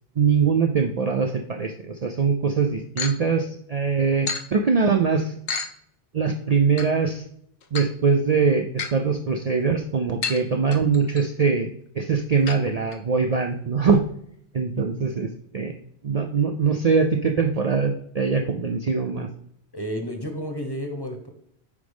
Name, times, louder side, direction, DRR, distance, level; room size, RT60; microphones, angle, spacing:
voice 1, 0.2-5.3 6.1-7.2 7.7-11.7 11.9-14.0 14.5-15.3 15.5-15.8 16.0-19.3, right 5 dB, 50° right, 4 dB, 0.5 m, -22 dB
sound 1, 3.0-3.2 4.3-4.4 5.5-5.7 6.8-6.9 7.6-7.9 8.8-8.9 10.2-10.4 10.7-11.2 12.5-12.6 12.9-13.0 13.3-13.4 13.9-14.0, left 5 dB, 65° left, 0.9 m, -30 dB
voice 2, 19.7-21.3, equal, 25° left, 4 dB, 1.0 m, -31 dB
8.2 x 5.1 x 3.5 m, 0.69 s
omnidirectional pair, 1.1 m